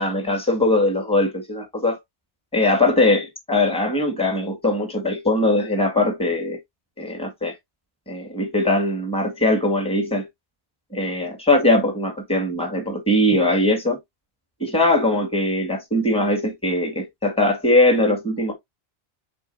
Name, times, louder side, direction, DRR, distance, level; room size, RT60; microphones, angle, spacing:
voice 1, 0.0-2.0 2.5-6.6 7.0-7.5 8.1-10.3 10.9-14.0 14.6-18.5, left 2 dB, 5° left, 2.1 m, -21 dB
9.1 x 4.1 x 2.7 m
omnidirectional pair, 1.1 m